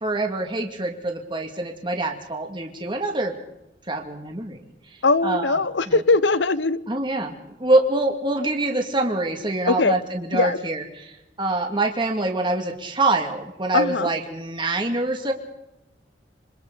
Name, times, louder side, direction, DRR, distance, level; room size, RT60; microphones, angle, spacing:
voice 1, 0.0-3.3 3.9-4.6 5.2-5.6 5.9-6.0 6.9-15.3, right 2 dB, 25° right, 3 dB, 2.4 m, -25 dB
voice 2, 5.0-6.8 9.7-9.9 10.3-10.6 13.7-14.1, left 3 dB, 80° left, 16 dB, 0.9 m, -20 dB
27.0 x 26.5 x 4.1 m, 0.90 s
head